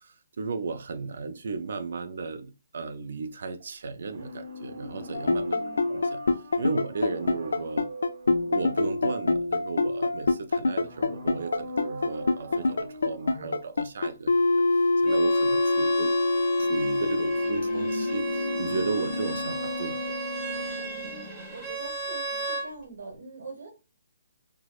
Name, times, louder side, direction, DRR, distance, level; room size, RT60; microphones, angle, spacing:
voice 1, 0.0-5.6 5.9-7.9 8.5-20.2, right 4 dB, 50° right, 0.4 m, -35 dB
sound 1, 4.0-9.7 10.8-13.8 16.6-21.8 22.0-22.1, left 1 dB, 30° right, 1.4 m, -39 dB
sound 2, 5.1-19.1, left 2 dB, 85° left, 0.4 m, -25 dB
voice 2, 5.4-6.0 21.0-23.7, right 3 dB, 90° right, 1.1 m, -44 dB
Bowed string instrument, 15.0-22.7, right 2 dB, 10° right, 0.9 m, -35 dB
4.5 x 2.0 x 2.3 m
hypercardioid pair, 175°, 0 cm